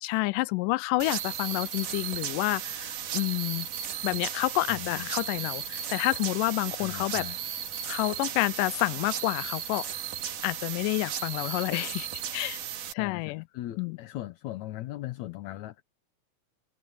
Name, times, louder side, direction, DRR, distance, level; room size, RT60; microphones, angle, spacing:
voice 1, 0.0-3.7 4.0-7.3 7.9-9.9 10.4-12.1 12.3-12.6 12.9-13.4 13.8-14.0, left 20 dB, 90° left, 2.2 m, -29 dB
sound 1, 1.0-12.9, right 9 dB, 75° right, 3.5 m, -35 dB
voice 2, 4.7-5.1 6.8-7.4 13.0-15.8, left 15 dB, 70° left, 2.0 m, -39 dB
omnidirectional pair, 3.7 m